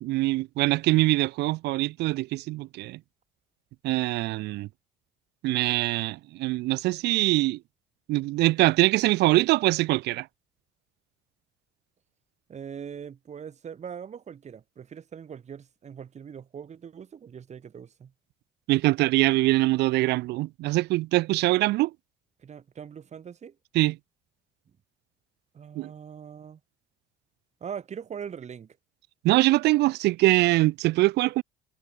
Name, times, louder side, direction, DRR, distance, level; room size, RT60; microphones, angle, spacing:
voice 1, 0.0-3.0 3.8-4.7 5.4-7.6 8.1-10.3 18.7-21.9 23.8-24.0 25.8-25.9 29.2-31.4, right 19 dB, 85° right, 1.9 m, -23 dB
voice 2, 12.5-18.1 22.4-23.6 25.5-26.6 27.6-28.8, right 7 dB, 40° right, 6.5 m, -41 dB
cardioid pair, 110°, 17 cm